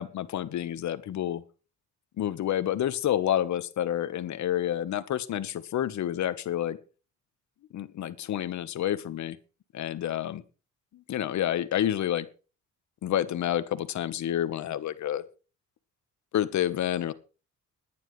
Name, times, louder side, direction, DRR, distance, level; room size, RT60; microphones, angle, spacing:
voice 1, 0.0-1.4 2.2-6.8 7.7-9.4 9.7-10.4 10.9-12.3 13.0-15.2 16.3-17.1, left 11 dB, 70° left, 13 dB, 1.3 m, -29 dB
20.5 x 10.0 x 3.3 m, 0.35 s
cardioid pair, 90°, 30 cm